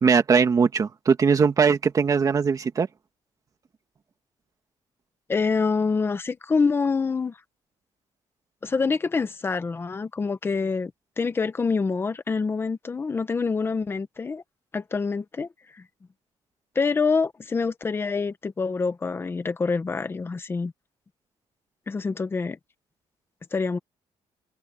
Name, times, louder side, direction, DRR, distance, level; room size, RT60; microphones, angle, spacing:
voice 1, 0.0-2.9, right 5 dB, 30° right, 1.8 m, -20 dB
voice 2, 5.3-7.3 8.6-10.9 11.2-14.4 14.7-15.5 15.7-15.8 16.7-20.7 21.9-22.6 23.5-23.8, left 4 dB, 20° left, 1.1 m, -26 dB
open air
cardioid pair, 170°, 11 cm